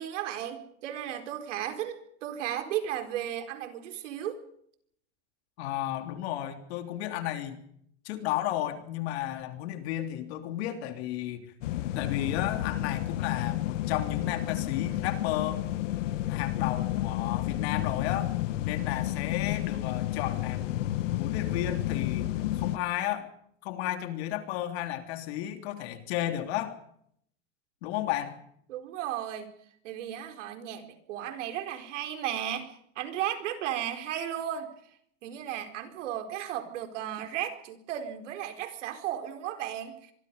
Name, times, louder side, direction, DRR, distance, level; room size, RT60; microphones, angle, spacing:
voice 1, 0.0-4.4 28.7-29.5 29.8-34.7 35.2-40.1, right 11 dB, 80° right, 7 dB, 4.4 m, -35 dB
voice 2, 5.6-7.6 8.0-11.5 11.9-15.6 16.3-18.3 18.6-20.9 21.2-23.3 23.6-26.8 27.8-28.4, left 12 dB, 60° left, 6 dB, 3.3 m, -33 dB
sound 1, 11.6-22.8, left 14 dB, 90° left, 1.5 m, -31 dB
25.0 x 22.0 x 5.4 m, 0.68 s
supercardioid pair, 160°, 36 cm